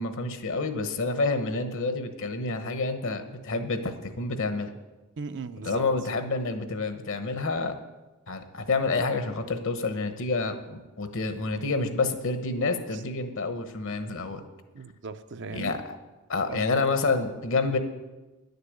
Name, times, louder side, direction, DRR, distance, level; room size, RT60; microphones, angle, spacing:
voice 1, 0.0-4.7 5.6-7.7 8.3-14.4 15.5-15.8 16.3-17.8, left 3 dB, 60° left, 8 dB, 1.0 m, -28 dB
voice 2, 5.2-5.9 12.9-13.0 14.7-15.8 16.5-16.8, right 4 dB, 55° right, 10 dB, 0.6 m, -38 dB
10.5 x 6.7 x 8.1 m, 1.1 s
head